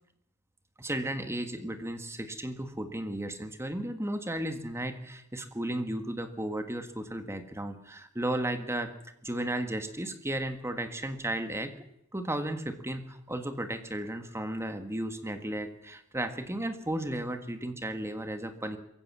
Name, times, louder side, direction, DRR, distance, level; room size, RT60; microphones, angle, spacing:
voice 1, 0.8-8.9 9.2-11.7 12.1-18.8, right 1 dB, 10° right, 8 dB, 1.7 m, -34 dB
22.5 x 16.0 x 7.4 m, 0.76 s
head